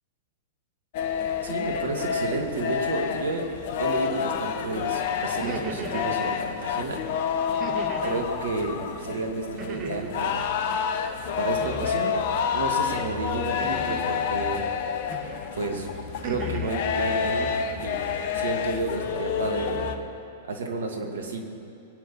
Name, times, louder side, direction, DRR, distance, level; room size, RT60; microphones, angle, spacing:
sound 1, 0.9-20.0, left 7 dB, 55° left, 1.2 m, -29 dB
voice 1, 1.4-3.5 3.8-7.0 8.0-10.6 11.4-12.2 12.5-14.6 15.2-15.9 16.2-18.0 18.3-19.8 20.5-21.4, right 3 dB, 70° right, 3 dB, 2.4 m, -31 dB
sound 2, 5.3-6.2 7.6-8.3 9.6-10.2 11.6-12.2 13.6-14.2 15.1-15.5 15.9-16.8, right 6 dB, 35° right, 1.5 m, -38 dB
23.5 x 9.5 x 5.8 m, 2.6 s
figure-of-eight pair, 100°, 0 cm